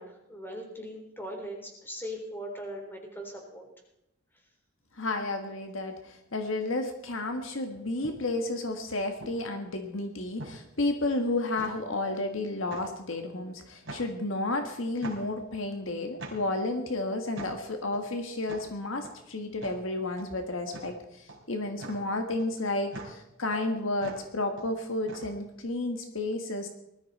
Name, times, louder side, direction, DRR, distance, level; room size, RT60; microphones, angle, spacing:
voice 1, 0.0-3.7, equal, 10° left, 1 dB, 3.9 m, -40 dB
voice 2, 5.0-26.7, left 2 dB, 70° left, 5 dB, 1.7 m, -32 dB
sound 1, 7.1-25.7, right 2 dB, 65° right, 3.7 m, -45 dB
19.5 x 13.5 x 4.3 m, 0.85 s
head